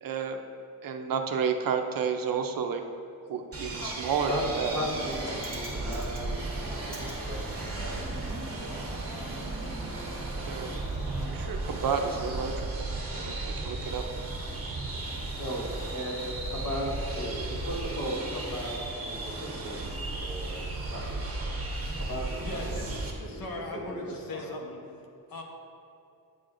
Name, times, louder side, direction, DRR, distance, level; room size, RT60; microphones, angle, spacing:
voice 1, 0.0-0.4 0.8-2.8 3.3-4.8 5.8-5.9 10.4-10.8 11.2-12.7 13.2-14.3, right 6 dB, 65° right, 5 dB, 0.6 m, -31 dB
sound 1, 3.5-23.1, right 2 dB, 40° right, 1.2 m, -35 dB
Bird, 4.5-12.7, right 1 dB, 5° right, 1.0 m, -43 dB
voice 2, 4.7-6.3 6.6-8.0 15.4-21.2 21.9-23.4 23.7-24.4, equal, 55° left, -5 dB, 1.6 m, -37 dB
Bass guitar, 9.6-13.7, equal, 20° left, 1.5 m, -53 dB
voice 3, 22.4-22.9 23.2-25.0 25.3-25.4, left 2 dB, 70° left, 1 dB, 0.9 m, -38 dB
9.0 x 6.4 x 2.5 m, 2.6 s
wide cardioid pair, 160°, 37 cm